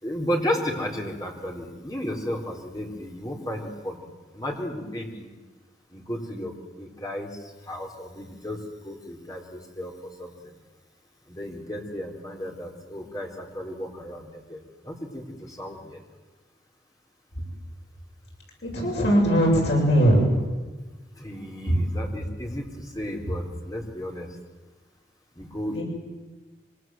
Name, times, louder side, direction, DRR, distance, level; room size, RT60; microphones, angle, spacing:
voice 1, 0.0-4.1 4.3-5.3 5.9-7.4 7.6-10.3 11.3-14.6 14.8-16.0 21.2-24.3 25.4-25.8, equal, 20° left, 1 dB, 4.0 m, -33 dB
voice 2, 18.6-20.3 21.7-21.8 25.7-25.8, equal, 70° left, -2 dB, 7.9 m, -20 dB
25.5 x 25.0 x 7.8 m, 1.3 s
head